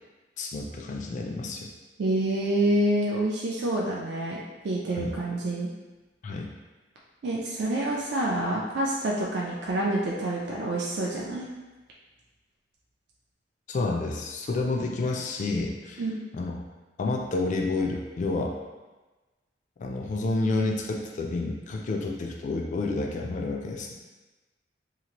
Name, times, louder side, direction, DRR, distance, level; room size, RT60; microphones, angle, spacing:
voice 1, 0.4-1.7 5.0-5.1 6.2-6.5 13.7-16.0 16.3-16.5 17.0-18.5 19.8-23.9, left 3 dB, 45° left, 0 dB, 0.3 m, -29 dB
voice 2, 2.0-4.4 4.6-5.7 7.2-11.5 16.0-16.2, right 1 dB, 65° right, -4 dB, 0.4 m, -27 dB
2.9 x 2.5 x 2.9 m, 1.2 s
head